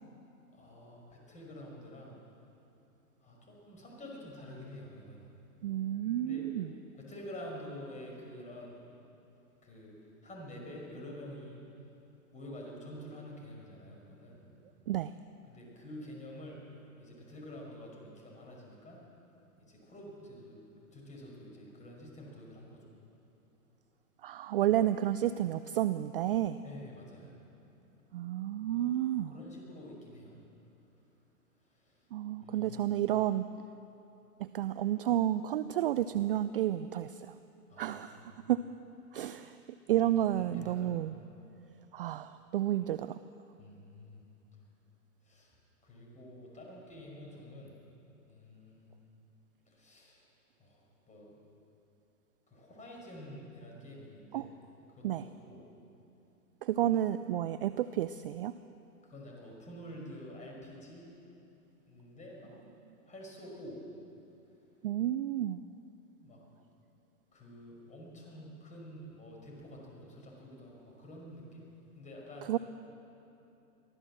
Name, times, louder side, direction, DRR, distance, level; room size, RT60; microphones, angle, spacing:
voice 1, 0.5-2.1 3.2-5.3 6.2-6.4 7.0-8.8 9.6-9.9 10.2-11.6 12.3-14.4 15.5-16.6 17.0-19.0 19.6-20.6 20.9-22.8 26.6-27.3 29.3-30.3 31.7-32.1 32.4-32.7 37.7-38.4 40.0-40.1 40.3-41.0 43.6-44.2 45.2-45.5 45.8-47.7 48.3-48.9 49.7-50.3 50.6-51.4 52.5-54.5 54.9-55.6 59.0-61.1 61.9-62.5 63.0-63.8 66.2-66.4 67.3-71.6 72.0-72.5, left 1 dB, 15° left, -2 dB, 5.8 m, -48 dB
voice 2, 5.6-6.7 14.9-15.1 24.2-26.6 28.1-29.3 32.1-33.5 34.4-37.3 37.8-38.6 39.1-39.6 39.9-41.1 41.9-43.2 54.3-54.5 55.0-55.3 56.6-58.5 64.8-65.6 72.5-72.6, right 12 dB, 40° right, 14 dB, 0.4 m, -31 dB
23.5 x 15.0 x 7.5 m, 2.9 s
hypercardioid pair, 115°, 46 cm